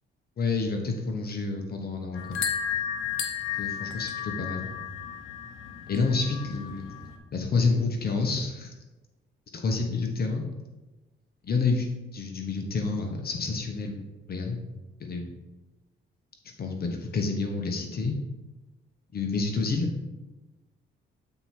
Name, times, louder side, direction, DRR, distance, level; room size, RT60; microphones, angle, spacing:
voice 1, 0.4-2.4 3.6-4.8 5.9-7.0 7.3-8.7 9.5-10.4 11.4-11.9 12.1-14.6 15.0-15.3 16.6-18.1 19.1-19.9, left 4 dB, 50° left, 3 dB, 1.1 m, -29 dB
sound 1, 2.1-7.2, left 8 dB, 85° left, 0.8 m, -33 dB
7.8 x 4.6 x 4.3 m, 1.1 s
cardioid pair, 90°, 20 cm